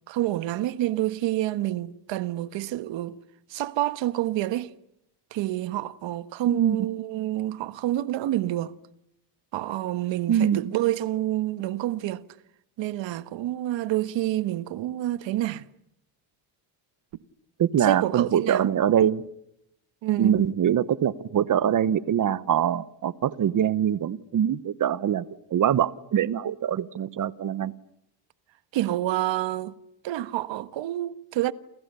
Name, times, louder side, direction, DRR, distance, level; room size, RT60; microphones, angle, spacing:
voice 1, 0.1-3.2 3.5-4.7 5.3-8.7 9.5-12.2 12.8-15.6 17.8-18.7 20.0-20.5 27.6-27.7 28.7-29.7 30.0-31.5, right 14 dB, 75° right, 1.4 m, -28 dB
voice 2, 6.5-6.8 10.3-10.6 17.6-19.2 20.2-25.2 25.5-27.7, right 9 dB, 45° right, 1.1 m, -23 dB
29.5 x 28.5 x 6.9 m
cardioid pair, 145°, 46 cm